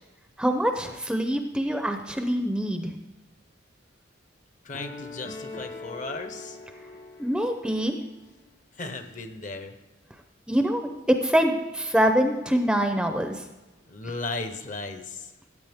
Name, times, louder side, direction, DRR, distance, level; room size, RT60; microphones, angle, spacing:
voice 1, 0.4-2.9 7.2-7.9 10.5-13.4, equal, 5° right, 5 dB, 0.6 m, -24 dB
voice 2, 4.6-6.6 8.8-9.7 13.9-15.3, left 3 dB, 40° left, 8 dB, 0.9 m, -36 dB
sound 1, 4.7-8.0, left 2 dB, 55° left, 1.6 m, -41 dB
15.0 x 8.4 x 3.6 m, 1.1 s
head